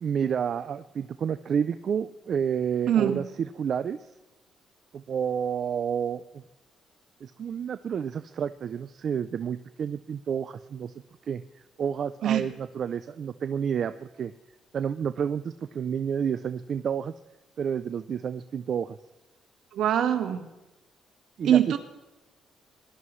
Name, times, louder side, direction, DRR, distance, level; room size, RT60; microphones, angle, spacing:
voice 1, 0.0-4.0 4.9-6.4 7.2-10.9 11.3-11.4 11.8-14.3 14.7-17.1 17.6-19.0 21.4-21.6, right 7 dB, 55° right, 11 dB, 0.4 m, -30 dB
voice 2, 2.9-3.2 12.2-12.4 19.7-20.4 21.4-21.8, right 10 dB, 75° right, 6 dB, 1.4 m, -23 dB
20.5 x 11.5 x 3.1 m, 1.0 s
cardioid pair, 90°, 0 cm